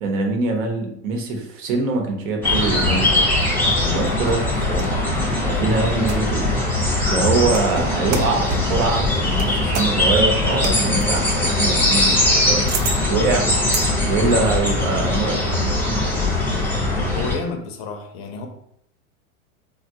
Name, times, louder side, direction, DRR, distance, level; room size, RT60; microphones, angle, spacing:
voice 1, 0.0-3.2 3.8-12.2 12.5-12.7 13.1-13.5 14.1-15.5, right 3 dB, 60° right, 3 dB, 0.9 m, -23 dB
sound 1, 2.4-17.4, left 2 dB, 5° left, 0.7 m, -20 dB
sound 2, 3.7-5.0 6.0-6.5 7.3-7.7 8.1-8.7 9.4-13.9, right 6 dB, 40° right, 0.4 m, -33 dB
voice 2, 17.1-18.5, left 4 dB, 45° left, 5 dB, 0.6 m, -30 dB
3.5 x 2.3 x 2.6 m, 0.72 s
hypercardioid pair, 110°, 43 cm